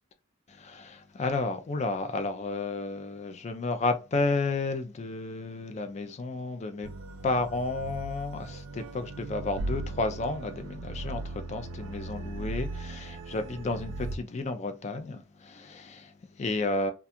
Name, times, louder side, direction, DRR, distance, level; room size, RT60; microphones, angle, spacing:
voice 1, 0.5-6.9 7.2-16.9, left 3 dB, 35° left, 0.4 m, -32 dB
sound 1, 6.8-14.2, right 2 dB, 70° right, 0.3 m, -38 dB
2.4 x 2.3 x 2.7 m
head